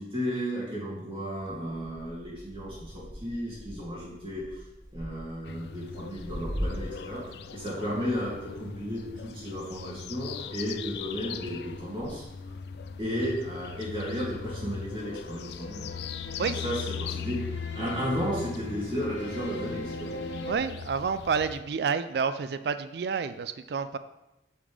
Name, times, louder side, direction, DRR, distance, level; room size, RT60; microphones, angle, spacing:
voice 1, 0.0-4.6 4.9-7.2 7.5-12.2 13.0-15.9 16.4-17.4 17.7-20.1, equal, 30° right, -7 dB, 2.6 m, -33 dB
sound 1, 1.4-7.2 7.5-14.6 14.8-15.6 16.2-18.1 18.5-18.9 19.6-19.7, equal, 20° left, 2.2 m, -43 dB
sound 2, 5.5-21.6, left 6 dB, 65° left, 0.3 m, -40 dB
sound 3, 15.4-20.5, left 1 dB, 80° left, 0.8 m, -40 dB
voice 2, 20.5-24.0, right 6 dB, 65° right, 12 dB, 0.3 m, -29 dB
8.7 x 5.2 x 3.4 m, 0.94 s
head